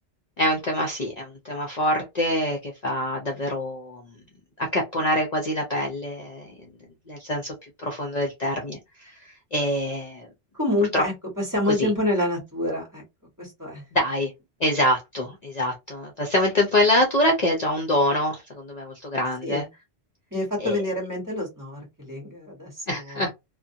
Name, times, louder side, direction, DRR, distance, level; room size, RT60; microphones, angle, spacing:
voice 1, 0.4-4.0 4.7-6.4 7.1-7.5 7.8-9.1 9.5-10.3 10.9-11.0 11.8-11.9 13.9-14.3 14.6-19.6 20.6-20.7 22.9-23.3, left 1 dB, 45° left, 0.6 m, -25 dB
voice 2, 10.5-13.0 13.4-13.8 19.4-19.7 20.3-23.3, left 1 dB, 20° right, 1.2 m, -27 dB
2.5 x 2.2 x 2.6 m
omnidirectional pair, 1.1 m